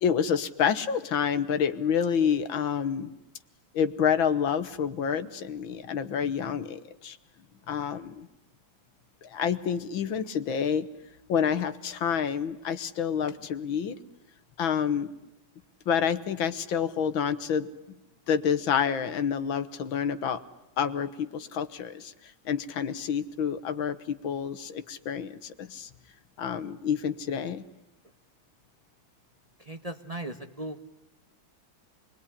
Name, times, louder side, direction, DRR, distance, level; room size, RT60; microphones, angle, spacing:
voice 1, 0.0-3.1 3.7-7.2 7.7-8.3 9.2-10.9 11.3-14.0 14.6-15.1 15.9-18.0 18.3-20.4 20.8-22.1 22.5-25.9 26.4-27.6, left 7 dB, 75° left, 11 dB, 2.0 m, -28 dB
voice 2, 29.7-30.8, right 1 dB, 20° right, 6 dB, 1.1 m, -37 dB
28.0 x 21.0 x 10.0 m, 0.93 s
omnidirectional pair, 2.2 m